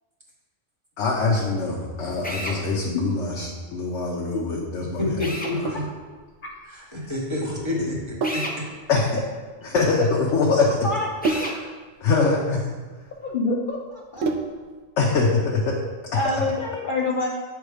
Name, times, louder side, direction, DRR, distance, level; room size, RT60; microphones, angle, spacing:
voice 1, 1.0-5.2 7.8-7.9 8.9-9.1 9.7-10.8 11.3-11.4 12.0-12.7 15.0-15.8, left 3 dB, 75° left, -2 dB, 1.1 m, -23 dB
Drill, 2.2-2.6 5.2-5.6 8.2-8.6 11.2-11.6, equal, 10° left, 0.5 m, -31 dB
voice 2, 5.0-5.9 6.6-8.6 11.5-11.6, left 1 dB, 25° right, -4 dB, 1.3 m, -29 dB
Sink (filling or washing), 5.5-14.8, right 3 dB, 90° right, 1.0 m, -32 dB
voice 3, 10.6-11.1 13.2-14.2 16.1-17.3, left 2 dB, 55° left, 0 dB, 0.6 m, -26 dB
7.7 x 3.5 x 4.9 m, 1.4 s
omnidirectional pair, 1.2 m